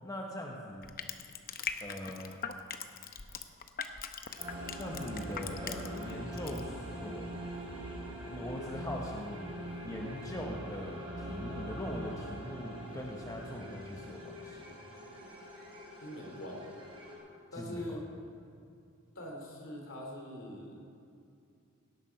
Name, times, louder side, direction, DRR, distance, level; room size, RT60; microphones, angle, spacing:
voice 1, 0.0-0.9 1.8-2.4 4.7-7.4 8.2-9.5 9.8-14.8 17.5-18.0, left 1 dB, 15° left, 0 dB, 0.8 m, -41 dB
Crushing, 0.8-6.1 6.4-6.6, left 7 dB, 40° left, 0.7 m, -40 dB
sound 1, 4.4-17.2, equal, 25° right, 3.9 m, -43 dB
voice 2, 16.0-16.6 17.5-18.0 19.1-21.0, left 1 dB, 60° left, 0 dB, 2.9 m, -43 dB
17.5 x 8.0 x 5.7 m, 2.5 s
head